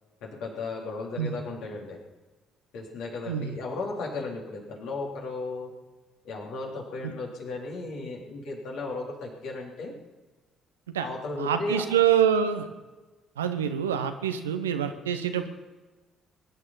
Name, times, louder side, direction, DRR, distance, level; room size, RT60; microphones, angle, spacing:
voice 1, 0.2-2.0 2.7-5.7 6.2-9.9 11.0-11.8, left 3 dB, 60° left, -1 dB, 3.4 m, -35 dB
voice 2, 11.4-12.6 13.4-15.5, right 9 dB, 75° right, 8 dB, 1.0 m, -26 dB
22.0 x 11.0 x 5.7 m, 1.2 s
figure-of-eight pair, 45°, 0 cm